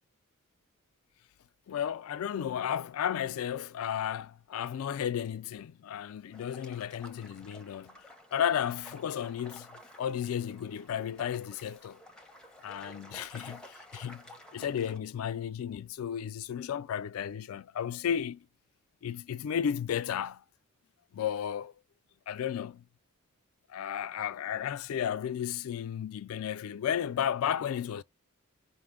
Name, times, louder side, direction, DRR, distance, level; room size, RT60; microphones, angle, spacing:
voice 1, 1.7-8.0 8.3-9.7 10.0-12.0 12.6-14.2 14.5-18.4 19.0-20.4 21.1-21.7 22.3-22.8 23.7-28.0, left 9 dB, 85° left, 0.3 m, -33 dB
sound 1, 6.3-15.0, left 1 dB, 5° left, 0.7 m, -52 dB
5.0 x 2.1 x 3.5 m
head